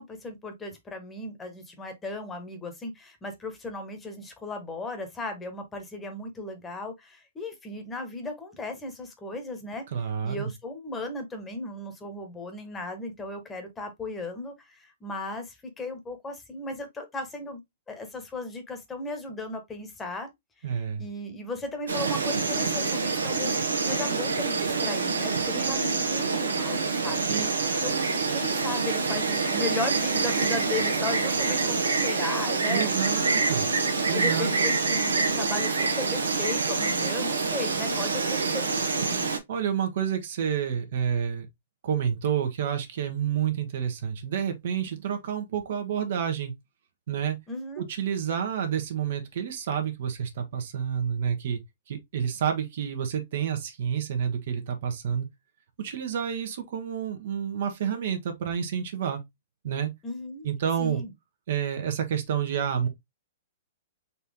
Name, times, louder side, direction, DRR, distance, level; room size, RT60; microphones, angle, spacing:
voice 1, 0.0-9.8 10.2-17.6 17.9-20.3 20.6-20.7 21.0-27.2 27.8-27.9 28.3-31.8 32.0-33.2 34.1-39.2 47.5-47.9 60.0-60.5 60.8-61.1, left 2 dB, 15° left, 1.3 m, -36 dB
voice 2, 9.9-10.5 20.6-21.1 25.4-25.8 27.3-28.0 32.7-33.7 34.1-34.5 39.5-41.5 41.8-46.5 47.1-47.4 47.8-51.6 51.9-55.3 55.8-59.2 59.6-59.9 60.4-61.0 61.5-62.9, right 8 dB, 60° right, 1.1 m, -29 dB
Insect, 21.9-39.4, right 4 dB, 85° right, 1.1 m, -26 dB
4.2 x 2.7 x 3.6 m
hypercardioid pair, 120°, 0 cm